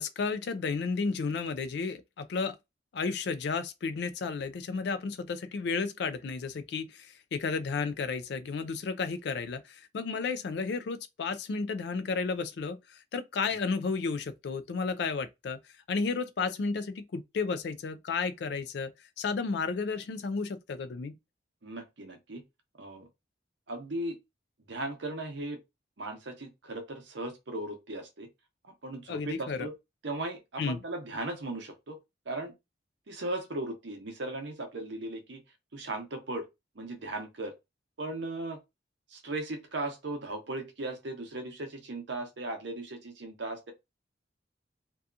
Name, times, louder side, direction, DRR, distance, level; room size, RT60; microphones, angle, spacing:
voice 1, 0.0-2.6 2.9-15.6 15.9-21.2 29.1-29.7 30.6-30.8, left 4 dB, 60° left, 0.3 m, -32 dB
voice 2, 21.6-22.4 22.8-23.1 23.7-24.2 24.7-25.6 26.0-28.3 28.6-29.7 30.0-32.0 32.3-32.5 33.1-35.4 35.7-36.5 36.8-37.5 38.0-38.6 39.1-43.7, right 2 dB, 75° right, 0.7 m, -37 dB
2.7 x 2.3 x 2.4 m
head